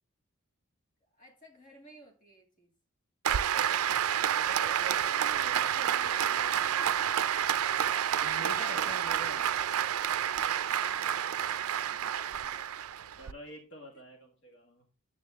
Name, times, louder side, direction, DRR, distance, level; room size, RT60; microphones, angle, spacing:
voice 1, 1.0-2.7 10.7-12.8 13.9-14.0, right 1 dB, 35° left, 2.0 m, -56 dB
Applause, 3.2-13.3, right 9 dB, 80° right, 0.4 m, -29 dB
voice 2, 4.3-6.5 8.2-9.5 13.2-14.8, equal, 50° left, 1.6 m, -47 dB
9.4 x 7.4 x 3.5 m
head